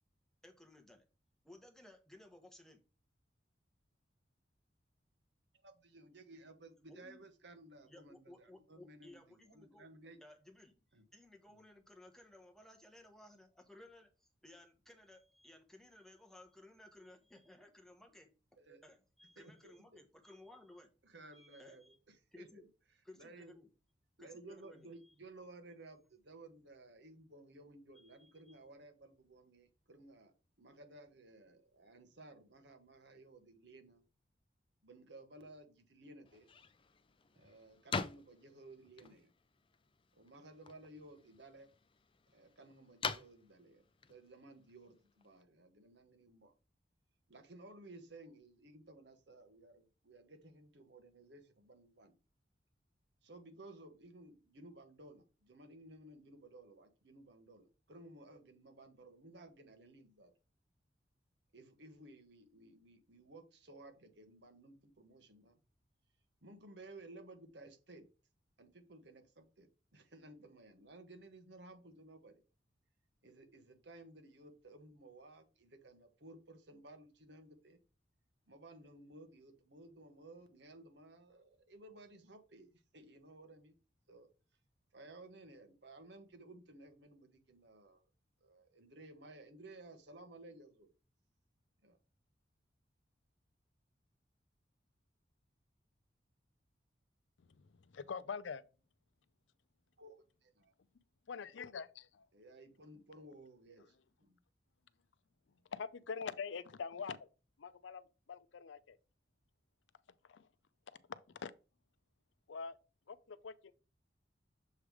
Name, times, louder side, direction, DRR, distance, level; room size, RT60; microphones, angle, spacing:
voice 1, 0.4-1.0 1.4-2.8 6.9-7.2 7.9-9.9 10.2-18.3 18.8-20.9 21.3-22.0 22.3-22.7 23.0-23.7 24.2-25.1 27.9-28.6, left 1 dB, 5° left, 1.1 m, -59 dB
voice 2, 5.6-10.2 10.9-11.0 11.5-11.6 18.6-18.8 19.4-19.7 21.0-22.6 23.2-23.6 24.2-30.3 30.6-34.0 34.8-36.5 37.3-39.3 40.1-41.7 42.3-46.5 47.3-52.2 53.2-60.3 61.5-65.6 66.4-68.1 68.6-72.4 73.2-77.8 78.5-83.7 84.1-84.3 84.9-88.0 88.4-90.9 91.8-92.0 100.0-100.7 102.3-104.4, right 2 dB, 70° right, 1.3 m, -57 dB
sound 1, 36.2-45.4, left 5 dB, 30° left, 0.4 m, -47 dB
voice 3, 97.4-98.6 101.3-102.3 105.7-107.3 107.6-109.0 110.2-110.5 110.9-111.5 112.5-112.8 113.1-113.7, left 5 dB, 85° left, 0.5 m, -45 dB
7.2 x 3.3 x 4.9 m
head